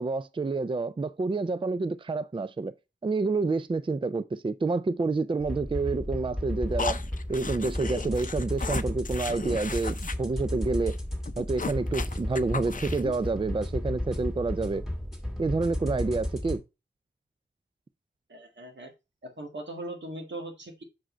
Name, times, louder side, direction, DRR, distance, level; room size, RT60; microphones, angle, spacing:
voice 1, 0.0-2.7 3.0-7.0 7.3-11.0 11.4-14.8 15.4-16.6, right 3 dB, 30° right, 0.4 m, -28 dB
sound 1, 5.4-16.6, left 1 dB, ahead, 2.2 m, -33 dB
sound 2, 6.8-10.1 10.4-10.6 10.8-11.0 11.2-13.2, left 4 dB, 45° left, 0.5 m, -36 dB
voice 2, 18.3-18.9 19.2-20.8, right 1 dB, 80° right, 1.7 m, -39 dB
6.2 x 4.8 x 4.3 m
wide cardioid pair, 55°, 18 cm